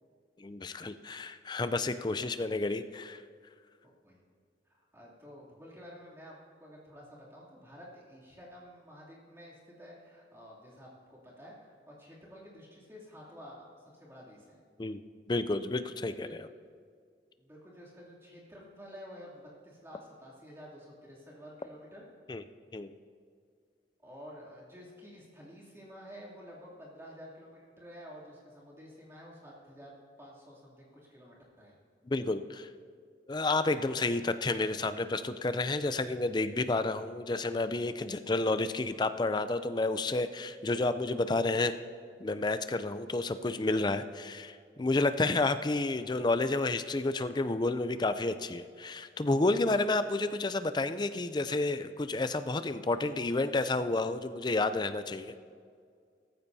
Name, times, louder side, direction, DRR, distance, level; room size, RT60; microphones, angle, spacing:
voice 1, 0.4-3.2 14.8-15.0 15.3-16.5 22.3-22.4 22.7-23.0 32.1-32.7 33.3-41.7 42.2-55.3, left 2 dB, 25° left, 11 dB, 0.4 m, -30 dB
voice 2, 4.6-13.7 13.9-14.6 16.2-16.3 17.4-22.0 24.0-31.8, equal, 15° right, -5 dB, 2.8 m, -51 dB
16.5 x 14.0 x 2.7 m, 2.2 s
head